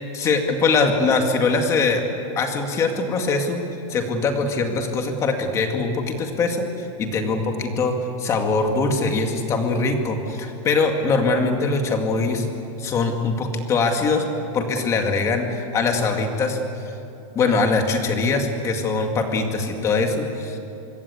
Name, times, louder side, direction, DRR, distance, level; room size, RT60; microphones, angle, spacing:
voice 1, 0.1-2.0 2.4-3.6 3.9-12.5 12.8-14.3 14.5-16.6 17.3-20.6, left 3 dB, 15° left, 4 dB, 2.1 m, -22 dB
26.0 x 21.5 x 8.4 m, 2.9 s
supercardioid pair, 175°, 18 cm